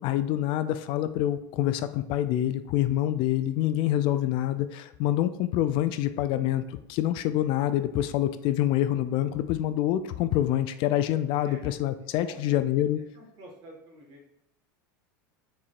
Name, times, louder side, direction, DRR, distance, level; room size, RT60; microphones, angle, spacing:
voice 1, 0.0-13.0, left 12 dB, 55° left, 11 dB, 0.4 m, -26 dB
voice 2, 12.2-12.6 13.1-14.3, right 1 dB, 50° right, 1 dB, 1.5 m, -48 dB
4.6 x 4.2 x 2.5 m, 0.81 s
hypercardioid pair, 95°, 11 cm